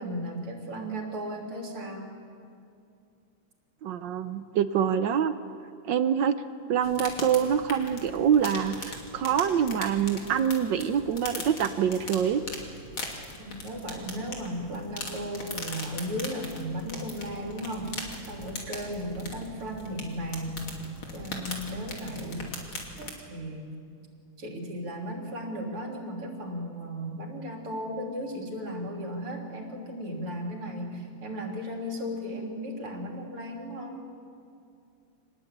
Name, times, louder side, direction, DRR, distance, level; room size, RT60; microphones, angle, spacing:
voice 1, 0.0-2.1 13.4-17.9 18.3-20.7 21.1-22.4 23.0-23.8 24.4-34.1, equal, 85° right, 0 dB, 4.1 m, -35 dB
voice 2, 3.8-5.3 5.9-6.3 6.7-12.4, right 8 dB, 65° right, 11 dB, 1.3 m, -25 dB
sound 1, 6.8-23.1, left 2 dB, 65° left, 3.6 m, -40 dB
26.0 x 20.0 x 8.7 m, 2.5 s
omnidirectional pair, 2.4 m